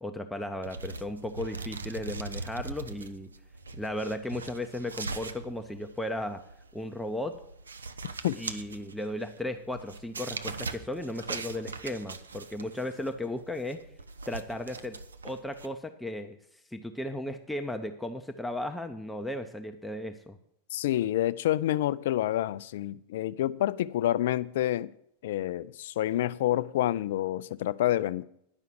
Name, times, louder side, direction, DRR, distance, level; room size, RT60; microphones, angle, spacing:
voice 1, 0.0-3.3 3.7-6.4 6.7-7.4 8.3-13.8 14.3-15.0 15.2-16.4 16.7-20.4, left 1 dB, 5° left, 0.7 m, -35 dB
sound 1, 0.6-15.7, right 3 dB, 75° right, 0.6 m, -41 dB
voice 2, 20.7-24.9 25.2-28.2, left 13 dB, 55° left, 0.4 m, -28 dB
10.5 x 5.7 x 7.7 m
figure-of-eight pair, 90°, 0 cm